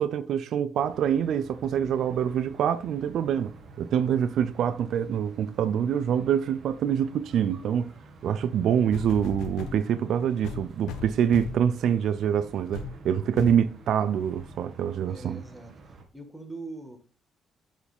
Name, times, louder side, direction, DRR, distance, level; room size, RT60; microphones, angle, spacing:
voice 1, 0.0-7.9 8.2-15.4, right 9 dB, 75° right, 0.4 m, -25 dB
sound 1, 0.7-16.0, right 3 dB, 55° right, 1.5 m, -50 dB
sound 2, 8.9-9.8 10.4-11.7 12.2-12.4 12.7-13.0 13.4-13.7 14.4-14.5, left 7 dB, 90° left, 0.5 m, -37 dB
voice 2, 15.1-15.7 16.1-17.0, right 2 dB, 5° right, 1.7 m, -41 dB
8.7 x 4.7 x 3.5 m
cardioid pair, 90°, 0 cm